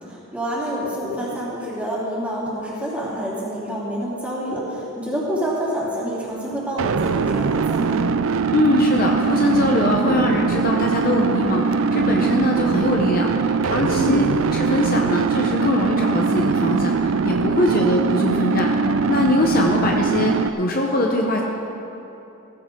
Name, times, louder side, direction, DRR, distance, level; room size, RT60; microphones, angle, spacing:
voice 1, 0.0-8.1 13.9-14.3 17.7-18.0, equal, 5° right, -8 dB, 3.4 m, -27 dB
sound 1, 6.8-20.5, right 4 dB, 75° right, 0.4 m, -21 dB
voice 2, 8.5-18.7 19.1-21.4, left 1 dB, 45° left, 0 dB, 1.0 m, -22 dB
16.5 x 14.5 x 3.9 m, 2.9 s
head